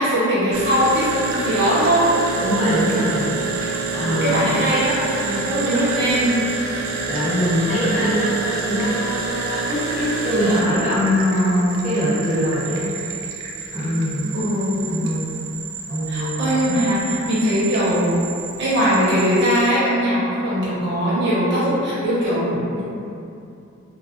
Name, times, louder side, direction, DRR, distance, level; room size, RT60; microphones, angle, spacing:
voice 1, 0.0-2.0 3.9-6.3 14.3-15.0 16.1-18.2 18.6-22.8, equal, 60° right, -10 dB, 0.8 m, -20 dB
sound 1, 0.5-19.7, right 4 dB, 75° right, 0.3 m, -28 dB
voice 2, 2.3-3.3 3.9-4.5 7.1-12.9 13.7-14.3 14.8-15.3 15.9-16.4 16.7-16.8, equal, 40° left, -12 dB, 1.0 m, -22 dB
2.3 x 2.1 x 2.7 m, 2.7 s
head